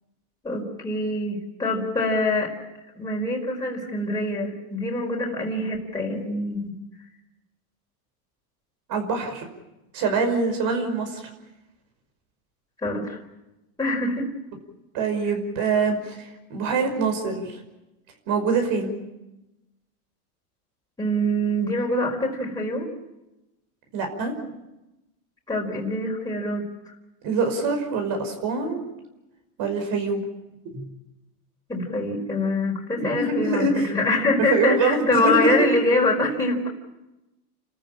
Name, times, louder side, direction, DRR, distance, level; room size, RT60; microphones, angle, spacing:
voice 1, 0.4-2.5 3.0-6.8 12.8-13.2 13.8-14.3 21.0-22.9 25.5-26.6 30.7-30.8 31.7-36.7, left 1 dB, 10° left, -1 dB, 4.5 m, -25 dB
voice 2, 8.9-9.4 9.9-11.2 14.9-17.6 18.3-19.0 23.9-24.3 27.2-28.8 29.6-30.2 33.0-33.9 34.5-35.7, right 4 dB, 45° right, 5 dB, 5.7 m, -24 dB
29.5 x 14.0 x 8.8 m, 0.98 s
supercardioid pair, 135°, 46 cm